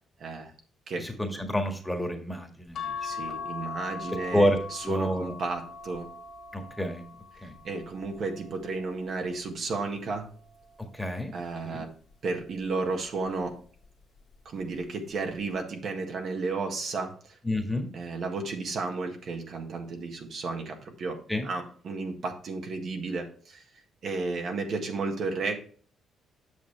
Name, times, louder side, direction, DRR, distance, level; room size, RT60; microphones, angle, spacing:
voice 1, 0.2-0.5 0.9-1.1 3.0-6.1 7.4-10.3 11.3-12.0 12.2-13.6 14.4-17.3 17.9-23.6 24.0-25.6, right 3 dB, 60° right, 1.6 m, -33 dB
voice 2, 1.0-3.1 4.3-4.6 4.8-5.3 6.5-7.0 7.4-7.6 10.9-11.3 11.6-11.8 17.4-17.9 21.3-21.5, left 1 dB, 5° left, 1.6 m, -28 dB
sound 1, 2.7-9.4 10.0-11.4 12.6-13.1 13.4-13.5, left 5 dB, 65° left, 1.6 m, -41 dB
8.2 x 6.3 x 3.3 m
cardioid pair, 90°, 0 cm